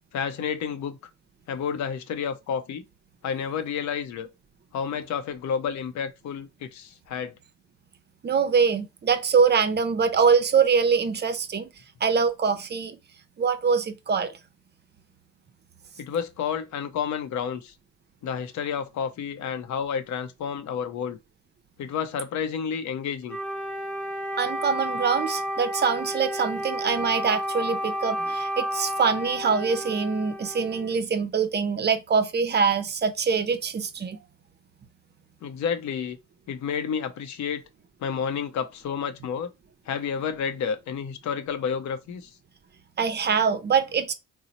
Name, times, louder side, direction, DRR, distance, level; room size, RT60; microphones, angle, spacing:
voice 1, 0.1-1.0 1.5-2.8 3.2-4.3 4.7-7.3 16.0-17.7 18.2-21.2 21.8-23.4 28.2-28.3 35.4-36.2 36.5-37.7 38.0-39.5 39.9-42.3, left 7 dB, 70° left, 0.6 m, -30 dB
voice 2, 8.2-11.7 12.0-13.0 13.4-14.3 24.4-34.2 43.0-44.1, right 6 dB, 35° right, 0.5 m, -24 dB
Wind instrument woodwind instrument, 23.3-31.0, equal, 5° left, 0.9 m, -31 dB
2.9 x 2.0 x 3.9 m
cardioid pair, 90°, 30 cm